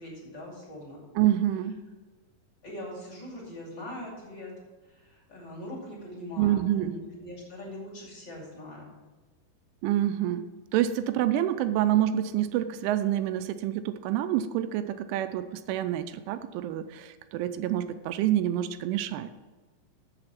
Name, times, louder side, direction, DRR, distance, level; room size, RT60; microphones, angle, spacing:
voice 1, 0.0-1.0 2.6-4.5 4.8-8.9, left 1 dB, 30° left, -4 dB, 2.2 m, -42 dB
voice 2, 1.2-1.8 6.4-6.9 9.8-10.4 10.7-19.3, right 12 dB, 85° right, 10 dB, 3.0 m, -27 dB
7.8 x 7.4 x 5.9 m, 1.3 s
omnidirectional pair, 5.5 m